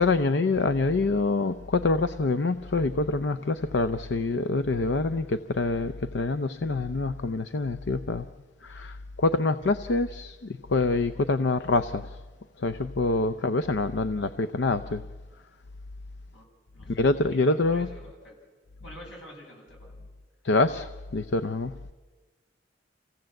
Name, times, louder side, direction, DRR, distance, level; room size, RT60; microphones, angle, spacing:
voice 1, 0.0-8.3 8.6-12.2 12.6-15.0 16.9-17.9 20.4-21.7, left 3 dB, 65° left, 0.6 m, -26 dB
voice 2, 16.7-18.5 18.8-20.0 20.6-20.9, left 1 dB, 90° left, 7.8 m, -48 dB
27.5 x 17.0 x 7.7 m
head